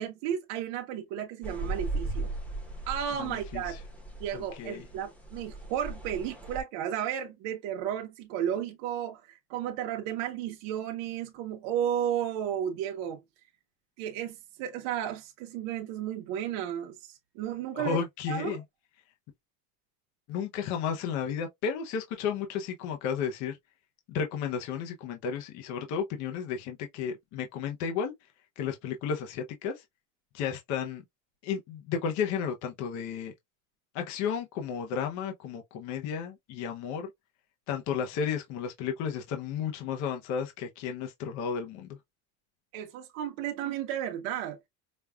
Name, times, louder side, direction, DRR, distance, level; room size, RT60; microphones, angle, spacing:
voice 1, 0.0-2.3 2.9-3.8 4.2-13.2 14.0-18.0 18.3-18.6 42.7-44.6, right 10 dB, 60° right, 0.8 m, -33 dB
sound 1, 1.4-6.6, right 2 dB, 5° left, 0.9 m, -37 dB
voice 2, 3.2-3.8 4.3-4.8 17.7-18.6 20.3-23.6 24.1-28.1 28.6-29.8 30.3-31.0 31.4-33.3 33.9-37.1 37.7-42.0, left 7 dB, 45° left, 0.7 m, -33 dB
5.2 x 2.3 x 2.2 m
cardioid pair, 165°, 38 cm